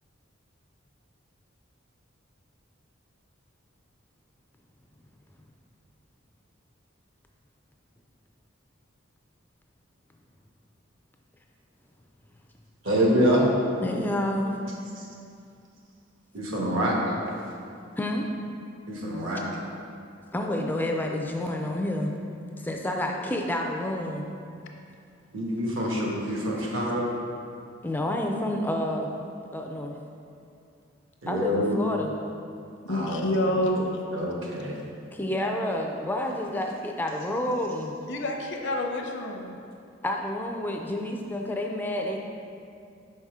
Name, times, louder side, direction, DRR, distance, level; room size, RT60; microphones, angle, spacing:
voice 1, 12.8-13.5 15.0-15.1 16.3-16.9 18.9-19.4 25.3-27.1 31.2-31.8 32.9-33.3 34.1-34.8, equal, 75° right, -3 dB, 1.2 m, -26 dB
voice 2, 13.8-14.6 18.0-18.3 20.3-22.2 22.6-24.3 27.8-30.0 31.3-32.1 35.1-38.0 40.0-42.2, left 1 dB, 10° left, 1 dB, 0.4 m, -29 dB
voice 3, 32.9-34.0 38.1-39.6, left 1 dB, 65° left, 2 dB, 0.7 m, -28 dB
5.5 x 5.4 x 3.6 m, 2.5 s
head